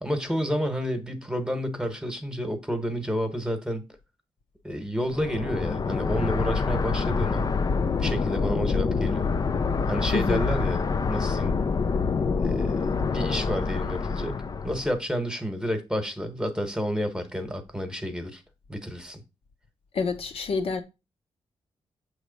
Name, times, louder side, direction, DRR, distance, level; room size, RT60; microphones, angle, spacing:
voice 1, 0.0-3.9 4.6-7.5 8.0-9.3 9.9-10.8 11.1-11.5 12.4-18.4 18.7-19.2, equal, 5° right, 1.1 m, -30 dB
sound 1, 5.1-15.0, left 5 dB, 35° left, 0.4 m, -26 dB
voice 2, 10.1-10.4 19.9-20.8, left 4 dB, 60° left, 0.8 m, -27 dB
7.2 x 3.2 x 5.1 m
cardioid pair, 115°, 11 cm